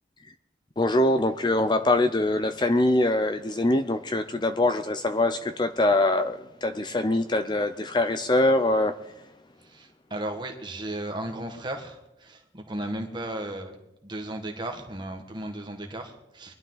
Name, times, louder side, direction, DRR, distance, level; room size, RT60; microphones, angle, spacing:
voice 1, 0.8-8.9, left 1 dB, 25° left, 10 dB, 0.5 m, -23 dB
voice 2, 9.6-13.8 14.0-16.5, right 1 dB, 25° right, 4 dB, 1.6 m, -35 dB
22.0 x 11.5 x 4.0 m, 0.89 s
head